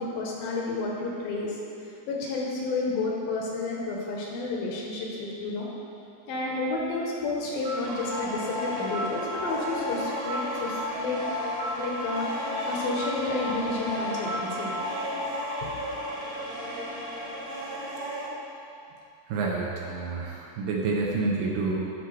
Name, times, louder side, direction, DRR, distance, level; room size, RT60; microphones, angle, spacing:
voice 1, 0.0-1.6 1.8-5.7 6.3-11.2 11.8-14.7 15.6-16.1, left 3 dB, 75° left, -2 dB, 2.4 m, -31 dB
sound 1, 7.6-18.3, equal, 60° right, 2.0 m, -32 dB
voice 2, 19.3-21.8, right 3 dB, 80° right, -2 dB, 2.2 m, -28 dB
10.5 x 4.4 x 3.2 m, 2.8 s
omnidirectional pair, 4.4 m